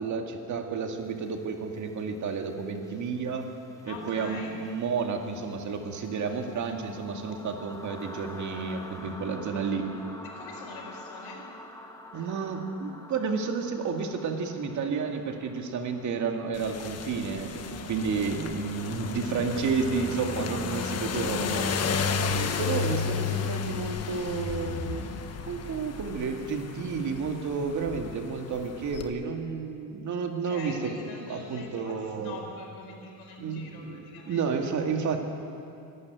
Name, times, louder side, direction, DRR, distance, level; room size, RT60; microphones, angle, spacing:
voice 1, 0.0-3.5 3.8-9.9 12.1-17.6 17.9-22.0 22.6-25.1 25.5-30.9 31.3-32.4 33.4-35.2, right 5 dB, 50° right, 4 dB, 2.2 m, -31 dB
sound 1, 1.1-18.8, left 1 dB, 10° left, 1.5 m, -48 dB
voice 2, 3.8-4.5 10.2-11.5 17.5-17.9 30.3-34.4, left 3 dB, 85° left, 2 dB, 4.7 m, -44 dB
sound 2, 16.5-29.1, left 5 dB, 40° left, 1.4 m, -33 dB
24.5 x 12.0 x 9.5 m, 2.7 s
cardioid pair, 135°, 37 cm